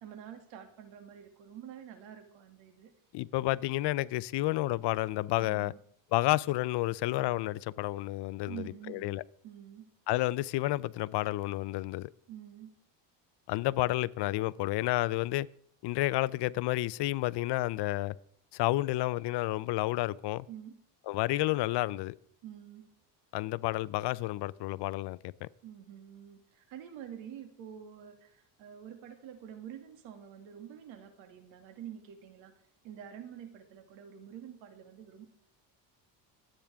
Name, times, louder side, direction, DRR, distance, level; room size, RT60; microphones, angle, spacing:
voice 1, 0.0-2.9 5.4-5.8 8.5-9.2 9.4-9.9 12.3-12.7 20.5-20.7 22.4-22.8 25.6-32.5 32.8-35.3, right 9 dB, 80° right, 2.5 m, -47 dB
voice 2, 3.1-5.7 6.1-9.2 10.1-12.1 13.5-15.5 15.8-18.2 18.5-20.4 21.1-22.1 23.3-25.5, left 17 dB, 65° left, 0.6 m, -30 dB
25.5 x 8.9 x 3.6 m
cardioid pair, 120°, 45 cm